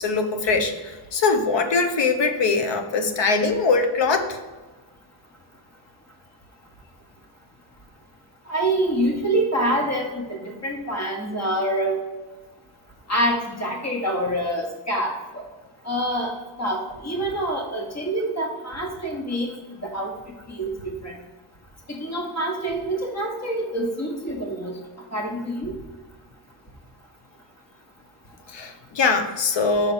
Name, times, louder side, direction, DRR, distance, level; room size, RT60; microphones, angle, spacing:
voice 1, 0.0-4.4 28.5-29.9, left 4 dB, 60° left, 7 dB, 0.9 m, -22 dB
voice 2, 8.5-12.0 13.1-15.4 15.8-16.3 16.6-19.5 19.8-20.1 20.5-21.2 21.9-24.8 25.1-25.7, right 1 dB, 30° left, 0 dB, 1.6 m, -26 dB
5.7 x 3.9 x 5.5 m, 1.2 s
cardioid pair, 95°, 50 cm